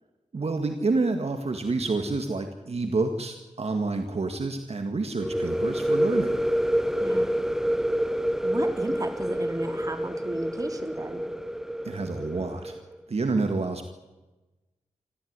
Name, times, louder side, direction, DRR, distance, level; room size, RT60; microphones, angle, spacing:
voice 1, 0.3-6.4 11.8-12.8 13.1-13.9, right 3 dB, 55° right, 6 dB, 2.1 m, -28 dB
sound 1, 5.2-12.8, equal, 5° right, 0.7 m, -27 dB
voice 2, 7.0-7.3 8.4-11.2, right 1 dB, 30° right, 6 dB, 3.1 m, -34 dB
26.5 x 14.5 x 9.8 m, 1.1 s
wide cardioid pair, 105°, 13 cm